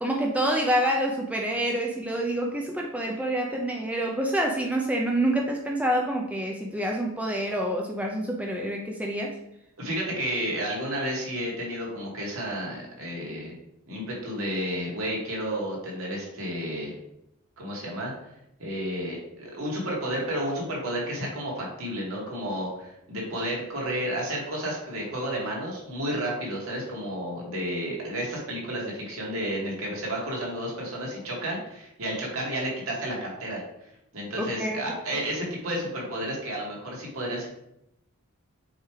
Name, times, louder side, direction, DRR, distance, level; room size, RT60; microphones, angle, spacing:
voice 1, 0.0-9.4 34.4-34.8, right 1 dB, 5° right, 0 dB, 0.5 m, -27 dB
voice 2, 9.8-13.5 13.9-16.9 17.6-18.1 18.6-33.6 34.1-37.5, equal, 65° right, -3 dB, 2.2 m, -31 dB
7.2 x 3.3 x 4.8 m, 0.82 s
head